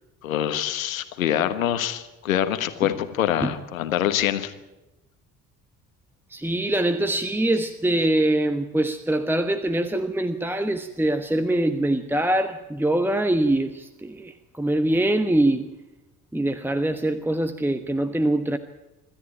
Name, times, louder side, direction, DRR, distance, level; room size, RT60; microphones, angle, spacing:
voice 1, 0.2-4.5, left 11 dB, 75° left, 10 dB, 1.5 m, -25 dB
voice 2, 6.3-15.7 16.3-18.6, right 1 dB, 5° right, 10 dB, 1.2 m, -23 dB
26.5 x 13.5 x 8.9 m, 1.0 s
figure-of-eight pair, 50°, 41 cm